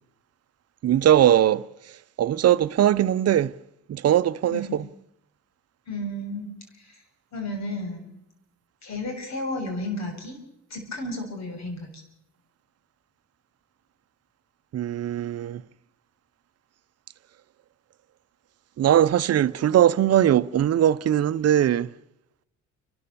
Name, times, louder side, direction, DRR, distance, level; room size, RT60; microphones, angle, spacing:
voice 1, 0.8-1.6 2.2-3.5 3.9-4.9 14.7-15.6 18.8-21.9, right 11 dB, 55° right, 0.8 m, -20 dB
voice 2, 5.9-6.5 6.8-7.0 7.3-8.1 8.8-10.4 10.7-12.0, left 1 dB, 60° left, 6.6 m, -33 dB
29.5 x 13.0 x 7.0 m
cardioid pair, 95°, 30 cm